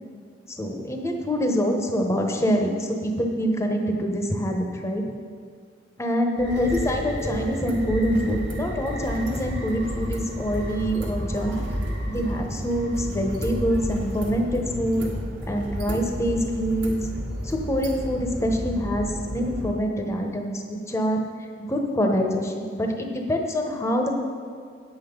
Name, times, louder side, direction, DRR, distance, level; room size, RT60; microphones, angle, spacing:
voice 1, 0.5-5.1 6.0-11.6 12.1-15.1 15.4-17.0 17.4-21.2 21.6-24.1, equal, 15° left, 2 dB, 0.9 m, -25 dB
sound 1, 6.4-19.7, equal, 75° right, 1.6 m, -31 dB
9.4 x 7.9 x 5.2 m, 2.1 s
head